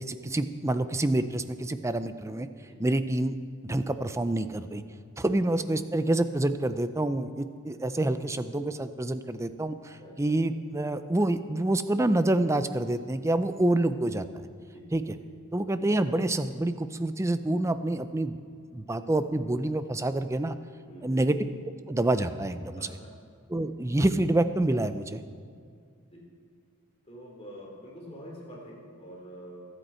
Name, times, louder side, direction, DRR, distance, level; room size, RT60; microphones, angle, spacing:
voice 1, 0.0-2.5 2.8-3.4 3.7-4.8 5.2-14.3 14.9-15.1 15.5-18.4 18.7-20.6 21.0-21.4 21.9-22.9 23.5-25.2, right 1 dB, 15° right, 11 dB, 0.4 m, -27 dB
voice 2, 10.0-10.4 14.6-14.8 15.2-15.3 20.9-21.2 22.7-23.1 26.1-26.2 27.0-29.7, equal, 30° left, -3 dB, 3.2 m, -46 dB
24.0 x 8.2 x 4.4 m, 2.2 s
head